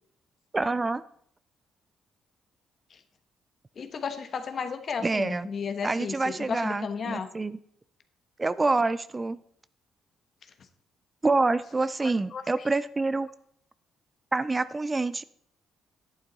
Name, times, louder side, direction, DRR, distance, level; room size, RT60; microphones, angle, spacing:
voice 1, 0.5-1.0 5.0-5.5 5.8-7.6 8.4-9.4 11.2-13.3 14.3-15.2, right 3 dB, 20° right, 16 dB, 0.4 m, -27 dB
voice 2, 3.8-7.3 12.0-12.7, left 6 dB, 50° left, 9 dB, 1.1 m, -34 dB
11.0 x 8.9 x 4.0 m, 0.66 s
cardioid pair, 90°, 0 cm